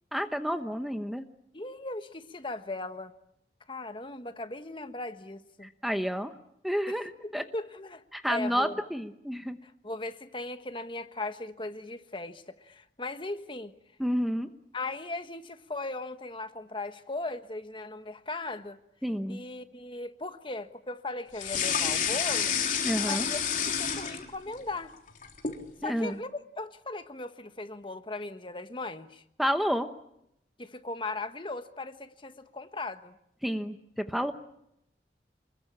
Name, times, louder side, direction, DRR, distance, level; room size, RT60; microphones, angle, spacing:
voice 1, 0.1-1.2 5.6-6.4 6.6-7.4 8.1-9.6 14.0-14.5 19.0-19.4 22.8-23.2 25.8-26.2 29.4-29.9 33.4-34.3, equal, ahead, 7 dB, 1.0 m, -30 dB
voice 2, 1.5-3.1 3.7-5.7 6.9-7.0 7.2-8.8 9.6-13.7 14.7-18.8 19.3-22.6 23.0-23.4 23.8-24.9 25.8-29.2 30.6-33.1, left 2 dB, 30° left, 9 dB, 1.3 m, -38 dB
sound 1, 21.4-24.6 24.9-25.6, left 7 dB, 45° left, 3.6 m, -29 dB
28.5 x 21.5 x 8.6 m, 0.78 s
head